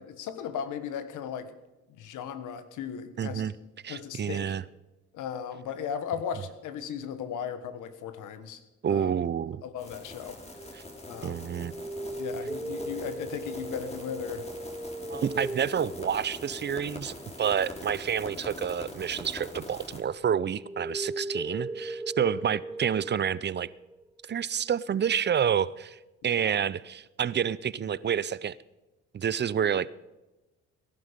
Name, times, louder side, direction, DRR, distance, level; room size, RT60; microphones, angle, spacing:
voice 1, 0.0-1.5 1.9-3.5 3.9-4.5 5.1-8.6 8.9-9.1 9.6-10.4 11.1-11.4 12.2-14.5 22.2-22.4 26.2-26.5, left 8 dB, 85° left, 11 dB, 1.4 m, -37 dB
voice 2, 3.2-3.5 3.8-4.6 8.8-9.6 10.7-10.8 11.2-11.7 15.1-23.7 24.3-26.0 26.2-28.6 29.1-29.9, right 8 dB, 35° right, 19 dB, 0.5 m, -29 dB
sound 1, 9.8-20.0, left 2 dB, 20° left, 3.0 m, -43 dB
sound 2, 10.6-19.9 20.2-24.0, right 1 dB, 5° right, 0.9 m, -39 dB
18.5 x 11.5 x 5.2 m, 1.1 s
cardioid pair, 90°, 30 cm